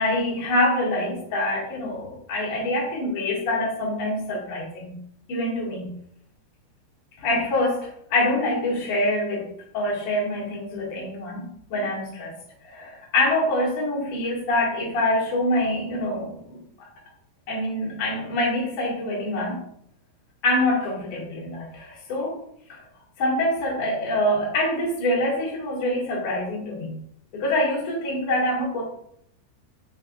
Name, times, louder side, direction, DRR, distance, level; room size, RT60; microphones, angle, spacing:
voice 1, 0.0-5.0 5.3-5.9 7.2-9.5 9.7-12.3 12.6-16.6 17.5-19.6 20.4-22.4 22.7-22.8 23.2-27.0 27.3-28.8, left 1 dB, 45° left, -3 dB, 2.1 m, -25 dB
6.6 x 5.7 x 2.5 m, 0.71 s
omnidirectional pair, 5.1 m